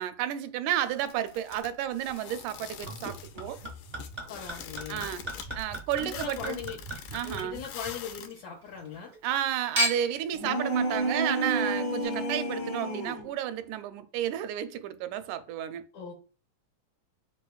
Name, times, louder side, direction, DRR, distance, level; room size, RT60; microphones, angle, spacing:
voice 1, 0.0-3.6 4.9-5.2 5.5-6.6 7.1-7.6 9.2-15.8, right 11 dB, 85° right, 2.0 m, -32 dB
sound 1, 0.7-8.3, left 8 dB, 85° left, 2.1 m, -45 dB
Chink clink / Liquid, 2.9-8.4 8.7-9.4 9.8-10.3 11.0-11.1, equal, 60° right, 0.4 m, -36 dB
voice 2, 4.3-5.1 6.0-6.8 7.2-9.1 15.9-16.1, left 7 dB, 70° left, 2.1 m, -39 dB
sound 2, 10.3-13.3, right 1 dB, 50° left, 1.1 m, -30 dB
4.8 x 4.7 x 2.3 m
omnidirectional pair, 3.5 m